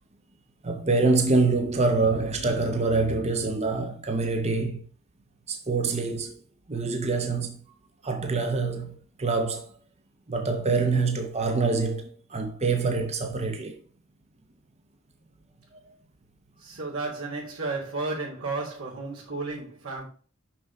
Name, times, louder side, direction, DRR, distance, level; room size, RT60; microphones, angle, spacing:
voice 1, 0.6-4.8 5.5-6.4 6.7-7.6 8.0-9.7 10.3-13.8, right 3 dB, 30° right, 0.8 m, -25 dB
voice 2, 16.6-20.0, right 3 dB, 85° right, 3.0 m, -33 dB
6.0 x 5.9 x 4.7 m
head